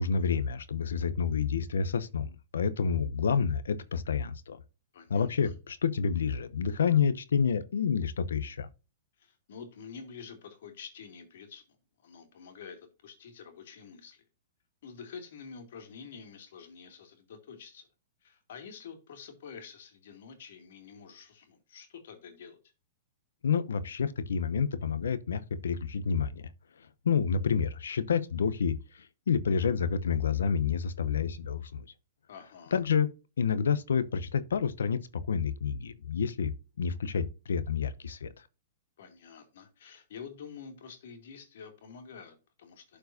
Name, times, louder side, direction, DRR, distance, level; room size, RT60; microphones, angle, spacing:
voice 1, 0.0-2.3 2.5-4.6 5.1-8.7 23.4-26.3 27.0-28.8 29.3-31.8 32.7-33.1 33.4-36.5 36.8-38.3, left 6 dB, 90° left, 0.8 m, -29 dB
voice 2, 4.9-5.5 9.2-11.6 12.0-14.2 14.8-17.9 18.2-22.6 32.3-32.8 39.0-43.0, left 6 dB, 70° left, 2.4 m, -48 dB
12.0 x 4.6 x 2.7 m
hypercardioid pair, 135°, 0 cm